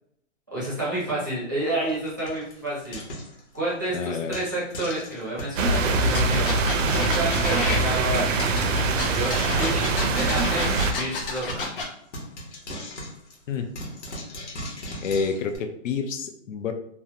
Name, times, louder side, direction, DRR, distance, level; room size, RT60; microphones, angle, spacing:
voice 1, 0.5-3.0 3.5-8.5 9.1-10.6 11.0-11.7, right 1 dB, 15° right, -8 dB, 0.4 m, -30 dB
Frying (food), 1.8-3.8 4.3-5.6 6.0-6.1 6.3-6.5 6.8-6.9 7.4-7.7 8.1-8.6 9.1-11.8 12.1-15.6, left 1 dB, 65° left, 1.0 m, -38 dB
voice 2, 3.9-4.4 13.5-13.7 15.0-16.7, left 5 dB, 85° left, 5 dB, 0.5 m, -28 dB
sound 1, 5.6-10.9, right 3 dB, 80° right, 0.5 m, -23 dB
sound 2, 6.1-7.8 8.4-11.8, left 3 dB, 45° left, 0.6 m, -30 dB
2.7 x 2.0 x 2.7 m, 0.72 s
hypercardioid pair, 170°, 37 cm